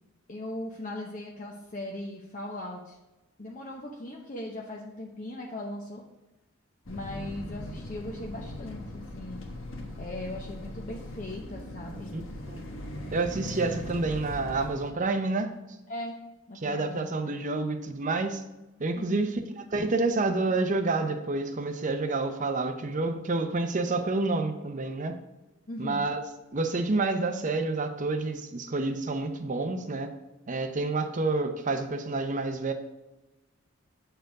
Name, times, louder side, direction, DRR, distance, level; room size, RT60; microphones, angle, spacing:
voice 1, 0.3-3.0 3.4-6.0 6.9-9.5 10.0-12.2 15.9-16.2 16.5-17.4 18.9-19.3 25.7-26.1, left 1 dB, 40° left, -1 dB, 0.7 m, -39 dB
sound 1, 6.9-14.9, left 1 dB, 70° left, 1.2 m, -40 dB
voice 2, 13.1-15.5 16.6-18.4 18.8-19.4 19.7-25.1 25.8-26.2 26.5-30.1 30.5-32.7, right 3 dB, 40° right, 7 dB, 0.7 m, -28 dB
7.8 x 4.5 x 4.7 m, 1.0 s
head